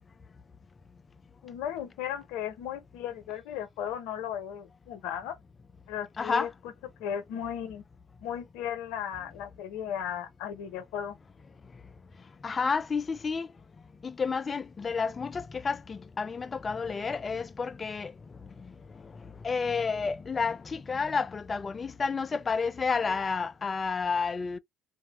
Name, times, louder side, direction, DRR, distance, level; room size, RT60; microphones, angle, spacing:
voice 1, 1.4-5.4 5.9-6.5 7.0-7.8 8.2-11.2, left 9 dB, 75° left, 0.6 m, -36 dB
voice 2, 6.2-6.5 12.4-13.5 14.0-18.1 18.6-18.7 19.0-24.6, left 5 dB, 30° left, 0.3 m, -30 dB
2.4 x 2.1 x 2.9 m
supercardioid pair, 75°, 0 cm